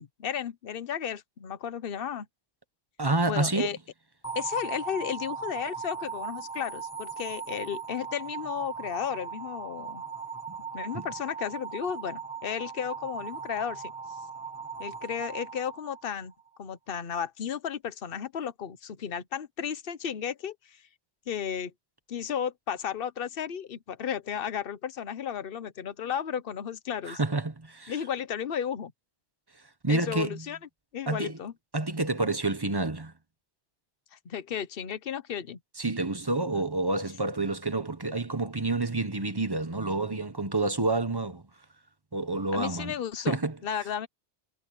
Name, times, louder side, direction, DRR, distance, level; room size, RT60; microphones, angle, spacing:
voice 1, 0.0-2.3 3.3-3.8 4.3-10.0 10.7-13.9 14.8-16.3 16.6-20.8 21.3-21.7 22.1-27.2 27.9-28.9 29.9-30.6 30.9-31.5 34.1-35.6 42.5-44.1, left 8 dB, 55° left, 1.1 m, -34 dB
voice 2, 3.0-3.8 10.9-11.0 27.1-27.9 29.8-30.4 31.1-31.4 31.7-33.1 35.8-41.4 42.1-42.9 43.3-43.5, right 2 dB, 20° right, 1.0 m, -28 dB
sound 1, 4.2-16.4, right 6 dB, 15° left, 2.2 m, -38 dB
omnidirectional pair, 1.2 m